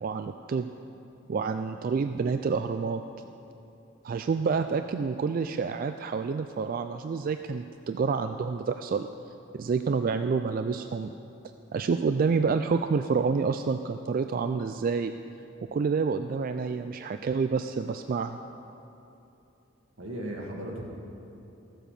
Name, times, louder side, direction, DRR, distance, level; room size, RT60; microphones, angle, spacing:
voice 1, 0.0-0.7 1.3-3.0 4.0-9.1 9.5-11.1 11.7-15.1 15.7-18.4, right 5 dB, 45° right, 8 dB, 0.3 m, -28 dB
voice 2, 20.0-20.8, right 1 dB, 85° right, -1 dB, 2.0 m, -37 dB
14.0 x 7.6 x 6.6 m, 2.9 s
head